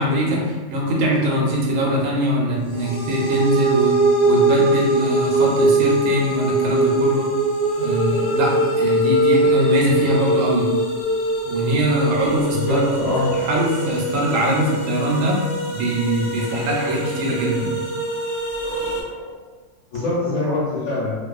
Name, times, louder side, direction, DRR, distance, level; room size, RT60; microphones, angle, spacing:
voice 1, 0.0-3.9 4.2-7.3 7.8-10.7 11.4-12.9 13.3-17.7, right 1 dB, 80° right, -3 dB, 1.0 m, -22 dB
sound 1, 2.7-19.0, right 1 dB, 60° left, 0.7 m, -22 dB
voice 2, 12.5-13.4 18.6-19.3 19.9-21.2, left 1 dB, 80° left, -9 dB, 1.1 m, -24 dB
2.5 x 2.3 x 2.3 m, 1.3 s
omnidirectional pair, 1.4 m